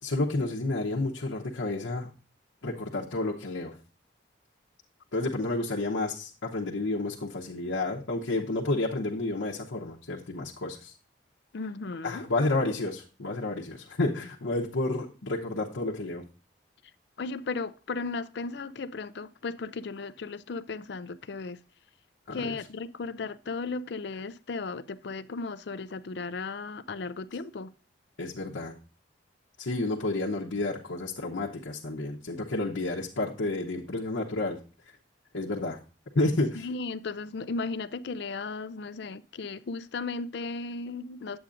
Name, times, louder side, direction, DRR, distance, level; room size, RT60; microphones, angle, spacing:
voice 1, 0.0-2.1 2.6-3.8 5.1-10.9 12.0-16.2 22.3-22.4 28.2-28.7 29.6-34.6 35.3-35.8 36.1-36.7, left 2 dB, 80° left, 0.9 m, -30 dB
voice 2, 11.5-12.3 17.2-21.6 22.3-27.7 36.5-41.4, left 4 dB, 55° left, 0.4 m, -35 dB
9.7 x 7.9 x 2.5 m
head